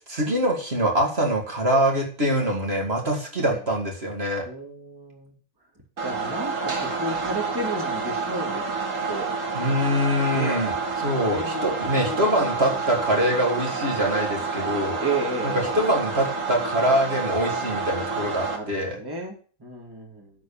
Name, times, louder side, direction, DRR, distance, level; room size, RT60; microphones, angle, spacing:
voice 1, 0.1-4.5 9.5-10.7 11.0-15.0 15.4-19.0, equal, 45° right, 1 dB, 2.6 m, -24 dB
voice 2, 4.5-5.3 6.0-8.6 9.1-9.3 10.3-10.7 11.2-12.7 15.0-15.8 18.5-20.3, right 2 dB, 15° right, 1 dB, 2.1 m, -33 dB
sound 1, 6.0-18.6, right 4 dB, 65° right, 2.2 m, -29 dB
12.0 x 4.5 x 7.2 m, 0.41 s
omnidirectional pair, 1.5 m